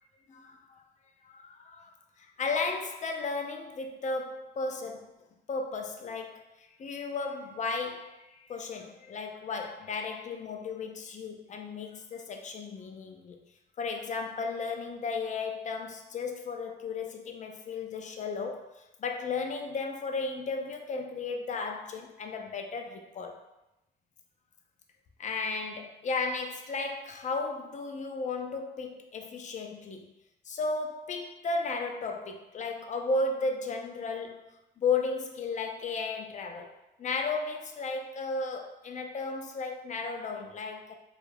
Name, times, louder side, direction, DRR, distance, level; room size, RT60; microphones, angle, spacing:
voice 1, 0.3-0.8 1.2-5.1 5.5-13.4 13.8-18.7 19.0-23.4 25.2-30.1 30.4-34.5 34.8-36.7 37.0-40.9, left 4 dB, 40° left, 4 dB, 0.4 m, -34 dB
2.3 x 2.0 x 3.2 m, 0.94 s
cardioid pair, 90°, 20 cm